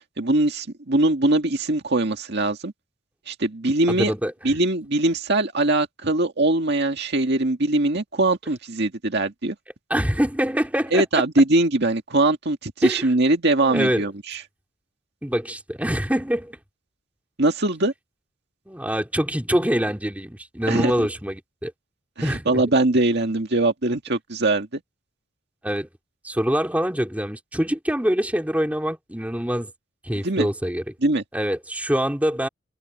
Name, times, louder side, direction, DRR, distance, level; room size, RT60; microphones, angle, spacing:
voice 1, 0.2-2.7 3.3-4.1 4.4-9.6 10.9-14.4 17.4-17.9 20.7-20.9 22.2-24.8 30.2-30.5 31.0-31.2, right 2 dB, 55° right, 2.0 m, -21 dB
voice 2, 3.9-4.3 9.9-11.2 12.8-13.1 13.6-14.1 15.2-16.6 18.7-21.7 22.2-22.6 25.6-25.9 26.2-29.7 30.0-30.9 31.3-32.5, equal, 5° right, 2.8 m, -24 dB
head